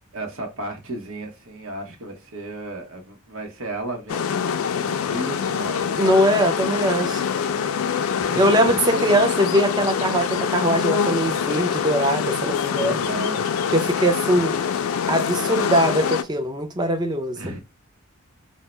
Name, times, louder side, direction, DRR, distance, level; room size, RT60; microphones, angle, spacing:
voice 1, 0.1-6.9 7.3-7.6 8.2-8.4 8.8-9.1 12.7-13.5 14.3-14.5 17.3-17.6, right 2 dB, 75° right, 0.9 m, -34 dB
sound 1, 4.1-16.2, left 7 dB, 75° left, 0.3 m, -25 dB
voice 2, 6.0-7.2 8.4-13.0 13.7-14.6 15.1-17.4, equal, 20° right, 0.4 m, -21 dB
2.7 x 2.0 x 3.1 m
head